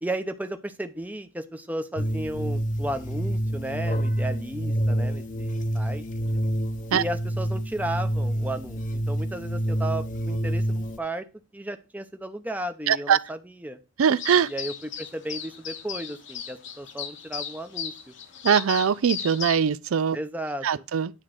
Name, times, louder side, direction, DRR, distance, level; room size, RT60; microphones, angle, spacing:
voice 1, 0.0-6.0 6.9-11.3 11.5-13.8 14.5-18.1 20.1-20.7, right 1 dB, 10° right, 0.7 m, -34 dB
single rim plays all, 2.0-11.0, right 1 dB, 40° left, 0.8 m, -27 dB
voice 2, 12.9-13.2 14.0-14.5 18.4-20.2 20.6-21.1, right 7 dB, 90° right, 0.4 m, -21 dB
sound 1, 14.2-19.6, left 8 dB, 60° left, 1.0 m, -36 dB
9.7 x 3.7 x 6.4 m
head